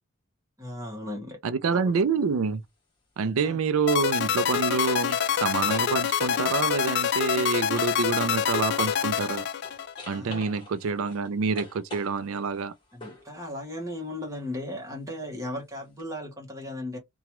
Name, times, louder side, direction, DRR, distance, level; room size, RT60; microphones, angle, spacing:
voice 1, 0.6-1.4 1.7-1.9 3.4-3.6 10.1-10.5 12.9-17.0, left 1 dB, 15° right, 1.0 m, -36 dB
voice 2, 1.4-2.6 3.2-9.5 10.1-12.7, right 5 dB, 75° right, 0.4 m, -27 dB
sound 1, 1.8-2.0 4.3-9.3 9.6-13.3 16.0-16.1, left 2 dB, 20° left, 1.2 m, -46 dB
sound 2, 3.9-10.2, left 9 dB, 50° left, 0.3 m, -26 dB
2.9 x 2.3 x 3.0 m
head